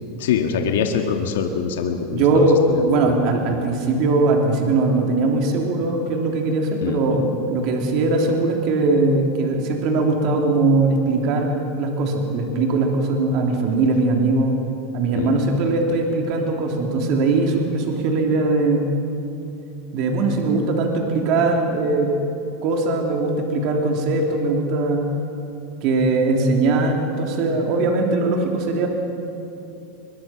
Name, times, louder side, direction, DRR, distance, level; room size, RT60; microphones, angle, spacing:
voice 1, 0.2-3.1 6.8-7.0 15.1-15.3, left 7 dB, 85° left, 4 dB, 1.7 m, -24 dB
voice 2, 2.1-2.6 2.9-14.6 14.9-18.9 19.9-22.1 22.6-25.0 25.8-28.9, right 3 dB, 50° right, 2 dB, 3.2 m, -20 dB
23.0 x 22.0 x 6.0 m, 2.8 s
supercardioid pair, 145°, 0 cm